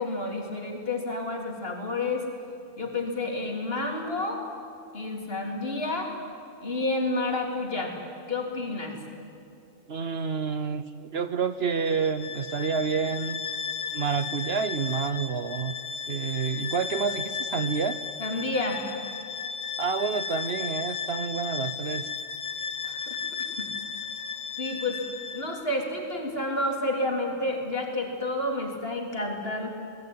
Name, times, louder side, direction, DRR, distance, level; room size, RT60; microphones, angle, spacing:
voice 1, 0.0-2.3 2.8-4.4 4.9-6.1 6.6-8.0 8.3-9.0 18.2-18.8 22.8-23.2 23.6-23.7 24.6-25.0 25.3-29.7, left 2 dB, 50° left, 1 dB, 3.7 m, -30 dB
voice 2, 9.9-13.4 13.9-15.7 16.1-18.0 19.8-22.1, right 5 dB, 55° right, 12 dB, 1.0 m, -29 dB
Bowed string instrument, 11.7-25.6, left 6 dB, 75° left, 1.7 m, -35 dB
26.0 x 19.5 x 9.6 m, 2.6 s
omnidirectional pair, 1.3 m